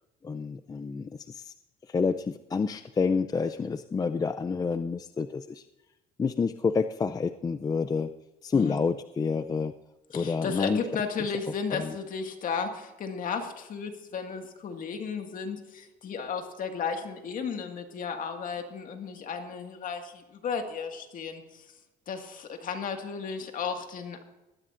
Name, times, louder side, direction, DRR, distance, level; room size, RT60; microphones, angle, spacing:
voice 1, 0.2-1.5 1.9-5.6 6.2-8.1 8.4-9.7 10.1-10.8 11.7-11.9, left 5 dB, 20° left, 11 dB, 0.4 m, -28 dB
voice 2, 10.1-21.7 22.1-24.2, left 6 dB, 55° left, 5 dB, 2.0 m, -34 dB
19.5 x 14.0 x 2.6 m, 1.0 s
cardioid pair, 110°, 17 cm